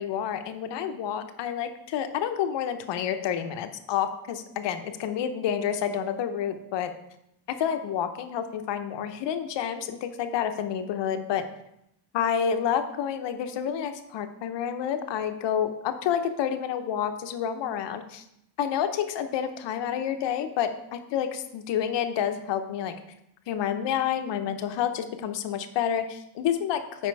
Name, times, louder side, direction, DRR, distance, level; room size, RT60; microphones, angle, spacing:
voice 1, 0.0-6.9 7.5-11.4 12.1-18.2 18.6-22.9 23.5-27.1, left 9 dB, 75° left, 8 dB, 0.9 m, -29 dB
8.4 x 5.1 x 4.6 m, 0.80 s
cardioid pair, 125°, 43 cm